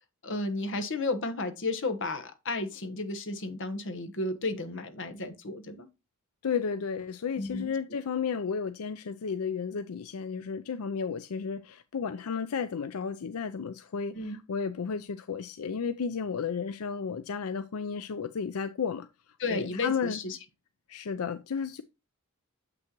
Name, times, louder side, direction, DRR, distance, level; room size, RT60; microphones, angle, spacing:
voice 1, 0.2-5.9 7.4-7.7 14.1-14.4 19.4-20.4, left 2 dB, 60° left, 1.2 m, -33 dB
voice 2, 6.4-20.2 20.9-21.8, left 6 dB, 85° left, 0.5 m, -33 dB
7.6 x 6.1 x 3.0 m
head